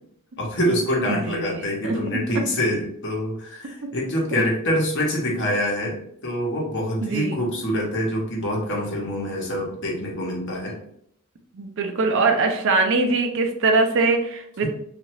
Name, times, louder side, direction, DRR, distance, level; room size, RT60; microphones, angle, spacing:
voice 1, 0.4-6.0 6.2-10.8, equal, 55° left, -2 dB, 1.0 m, -25 dB
voice 2, 1.1-2.0 7.0-7.4 11.5-14.7, right 3 dB, 60° right, 4 dB, 0.5 m, -22 dB
2.7 x 2.5 x 3.0 m, 0.69 s
head